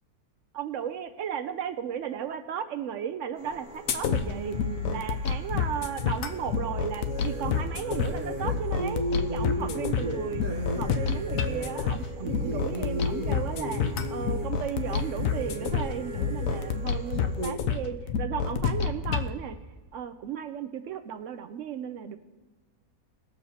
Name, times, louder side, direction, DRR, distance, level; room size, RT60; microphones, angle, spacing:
voice 1, 0.5-4.6 4.9-19.6 19.9-22.2, right 8 dB, 75° right, 9 dB, 0.7 m, -35 dB
sound 1, 3.4-17.5, equal, 40° right, 0.8 m, -36 dB
sound 2, 3.9-19.3, left 6 dB, 65° left, 0.8 m, -29 dB
20.0 x 7.0 x 2.8 m, 1.3 s
omnidirectional pair, 1.9 m